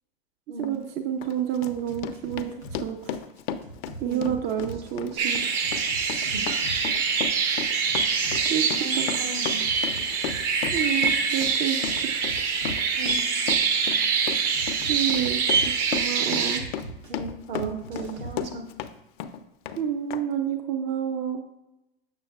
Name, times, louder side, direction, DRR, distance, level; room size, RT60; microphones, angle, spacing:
Run, 0.6-0.7 1.2-18.9 19.2-19.8 20.1-20.2, left 8 dB, 50° left, 0.5 m, -35 dB
voice 1, 0.6-3.1 4.0-5.4 8.5-8.7 8.9-9.1 10.7-12.3 14.9-16.6 19.8-21.4, right 9 dB, 35° right, 5 dB, 0.4 m, -29 dB
sound 1, 1.6-2.8 3.1-6.8 7.1-10.8 11.1-12.9 14.5-16.1 16.5-18.5, right 1 dB, 85° right, 1.4 m, -42 dB
voice 2, 4.0-4.3 5.1-5.3 6.3-6.4 8.6-9.6 13.0-13.2 17.1-18.6, right 4 dB, 65° right, 0 dB, 1.5 m, -36 dB
sound 2, 5.2-16.6, right 5 dB, 50° right, 1.0 m, -25 dB
6.7 x 6.3 x 2.3 m, 0.92 s
hypercardioid pair, 100°, 31 cm